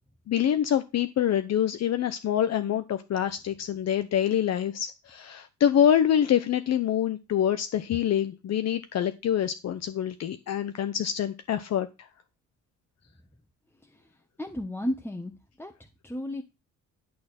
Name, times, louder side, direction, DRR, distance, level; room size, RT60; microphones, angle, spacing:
voice 1, 0.3-12.1, left 10 dB, 60° left, 10 dB, 0.8 m, -26 dB
voice 2, 14.4-15.3 15.6-15.7 16.0-16.4, left 1 dB, 5° left, 4 dB, 1.1 m, -32 dB
11.0 x 4.0 x 6.5 m, 0.27 s
cardioid pair, 90°, 30 cm